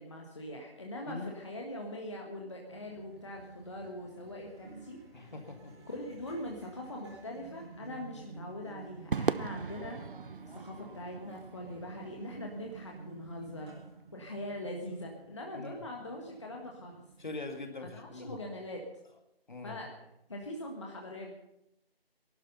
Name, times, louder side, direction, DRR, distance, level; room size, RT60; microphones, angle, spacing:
voice 1, 0.0-5.0 5.9-10.0 10.5-13.7 14.1-17.0 17.8-18.8 19.6-19.9 20.3-21.3, left 1 dB, 30° left, 0 dB, 1.5 m, -42 dB
sound 1, 2.6-17.3, right 3 dB, 30° right, 4.6 m, -51 dB
voice 2, 5.1-5.9 15.5-15.9 17.2-18.4 19.5-19.8, left 3 dB, 50° left, 5 dB, 2.1 m, -43 dB
Crowd / Fireworks, 9.1-13.6, right 5 dB, 60° right, 0.5 m, -38 dB
18.5 x 12.0 x 5.5 m, 0.84 s
figure-of-eight pair, 170°, 30 cm